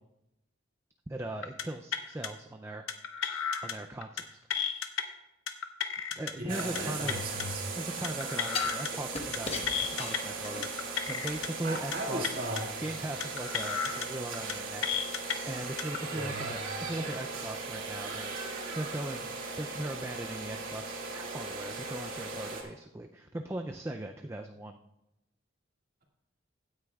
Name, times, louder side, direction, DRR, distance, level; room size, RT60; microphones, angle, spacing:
voice 1, 1.1-2.9 3.6-4.6 6.1-7.3 7.8-12.2 12.8-15.0 15.4-18.4 18.8-24.8, right 1 dB, 15° right, 4 dB, 0.3 m, -39 dB
sound 1, 1.4-1.6 1.9-2.3 2.9-3.7 4.0-4.2 4.5-5.0 5.5-6.3 6.6-6.8 7.1-7.5 8.0-8.9 9.2-9.4 9.7-10.2 10.6-11.5 11.8-12.0 12.2-12.6 13.2-14.1 14.3-14.5 14.8-15.4 15.8-16.0, left 7 dB, 85° left, 0.9 m, -33 dB
voice 2, 6.4-7.7 11.6-12.7 16.0-16.5, right 1 dB, 45° right, -2 dB, 2.0 m, -37 dB
sound 2, 6.5-7.7 8.5-10.9 11.3-11.4, left 3 dB, 30° left, 1.1 m, -39 dB
sound 3, 6.5-22.6, right 4 dB, 80° right, 2.4 m, -38 dB
16.0 x 9.6 x 2.3 m, 0.90 s
head